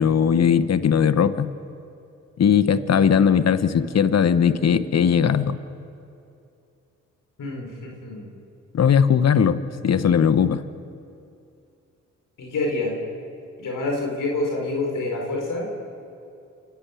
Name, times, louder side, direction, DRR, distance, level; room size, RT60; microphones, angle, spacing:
voice 1, 0.0-1.5 2.4-5.6 8.7-10.6, left 7 dB, 55° left, 13 dB, 1.0 m, -19 dB
voice 2, 7.4-8.3 12.4-13.0 13.6-15.7, left 2 dB, 75° left, 0 dB, 4.7 m, -27 dB
27.0 x 11.5 x 8.4 m, 2.6 s
cardioid pair, 55°, 32 cm